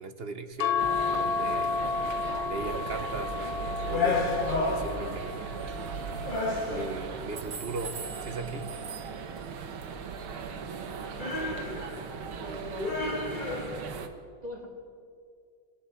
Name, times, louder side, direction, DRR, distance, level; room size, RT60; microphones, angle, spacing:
voice 1, 0.0-1.8 2.4-5.5 6.6-8.7, right 4 dB, 40° right, 9 dB, 1.0 m, -38 dB
sound 1, 0.6-7.2 7.9-9.3 10.5-10.9 11.3-11.4, left 5 dB, 75° left, 1.6 m, -33 dB
sound 2, 0.8-14.1, right 6 dB, 90° right, 2.2 m, -38 dB
sound 3, 3.9-5.4 6.2-7.3 11.2-12.2 12.8-14.0, left 3 dB, 30° left, 1.3 m, -31 dB
voice 2, 11.2-12.9 13.4-13.8 14.4-14.7, equal, 20° right, 0 dB, 3.2 m, -44 dB
22.5 x 15.5 x 8.4 m, 2.2 s
omnidirectional pair, 2.2 m